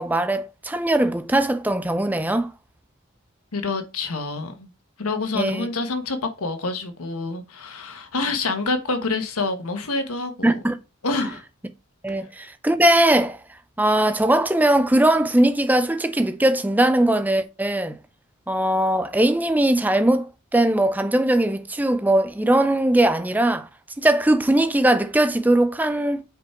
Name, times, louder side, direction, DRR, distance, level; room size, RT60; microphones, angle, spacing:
voice 1, 0.0-2.5 5.3-5.7 10.4-10.8 12.0-13.4 13.8-18.0 18.5-23.7 24.0-26.2, right 1 dB, 10° right, 0.5 m, -20 dB
voice 2, 3.5-4.7 5.0-10.6 11.0-11.4, left 3 dB, 85° left, 1.3 m, -27 dB
5.6 x 5.2 x 4.5 m
head